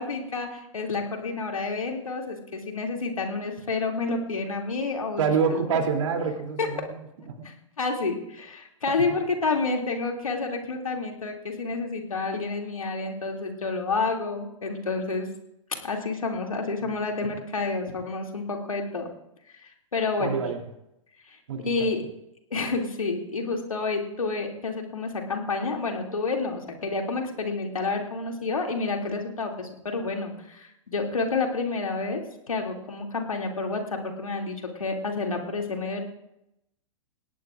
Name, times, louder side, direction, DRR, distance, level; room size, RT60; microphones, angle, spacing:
voice 1, 0.0-5.2 5.5-5.6 6.6-6.7 7.4-15.3 15.8-19.1 19.6-20.4 21.3-22.0 22.5-32.2 32.5-36.0, left 3 dB, 90° left, 2 dB, 2.6 m, -29 dB
voice 2, 5.2-7.5 8.9-9.0 16.8-16.9 20.2-20.6 21.5-21.7, right 6 dB, 70° right, 3 dB, 2.9 m, -27 dB
19.5 x 18.0 x 2.5 m, 0.85 s
hypercardioid pair, 115°, 17 cm